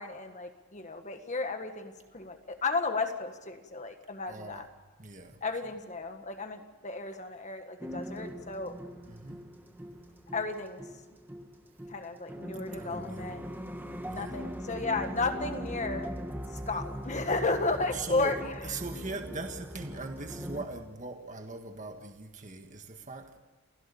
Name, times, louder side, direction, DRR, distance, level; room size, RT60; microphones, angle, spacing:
voice 1, 0.0-4.7 5.4-8.7 10.3-10.8 11.9-13.4 14.1-16.1 16.7-18.7 18.9-19.0, left 3 dB, 30° left, 7 dB, 1.7 m, -33 dB
voice 2, 4.3-4.7 5.0-5.4 9.0-9.4 12.7-13.4 14.0-14.4 17.9-23.4, right 3 dB, 35° right, 5 dB, 1.6 m, -41 dB
sound 1, 7.8-20.6, equal, 10° right, 1.5 m, -41 dB
29.0 x 16.5 x 7.0 m, 1.3 s
head